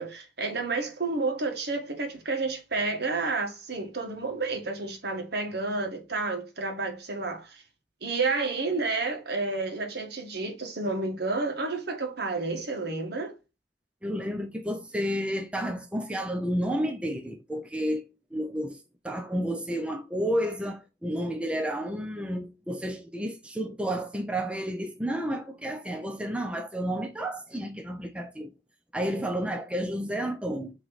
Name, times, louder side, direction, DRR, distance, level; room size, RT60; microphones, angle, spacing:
voice 1, 0.0-7.6 8.0-13.3, right 3 dB, 60° right, 1.8 m, -30 dB
voice 2, 14.0-18.0 18.3-28.5 28.9-30.7, equal, 5° right, 0.6 m, -31 dB
7.6 x 3.3 x 4.0 m
head